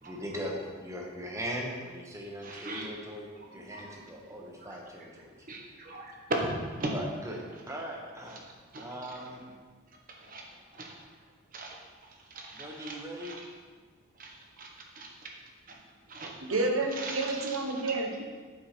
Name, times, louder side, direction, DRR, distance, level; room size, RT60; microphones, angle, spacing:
voice 1, 0.0-5.3 6.9-8.5 8.8-9.4 12.5-13.4, equal, 15° right, -1 dB, 1.0 m, -40 dB
voice 2, 2.4-2.9 3.7-3.8 4.6-4.8 5.5-6.1 6.5-6.9 8.7-8.9 10.2-10.5 10.7-10.9 11.5-13.4 14.2-14.3 14.6-14.7 14.9-15.1 15.7-15.8 16.1-16.4 16.9-17.6, right 2 dB, 40° right, 0 dB, 1.1 m, -40 dB
voice 3, 16.5-18.2, right 2 dB, 75° right, 2 dB, 1.0 m, -29 dB
8.0 x 4.5 x 4.4 m, 1.5 s
head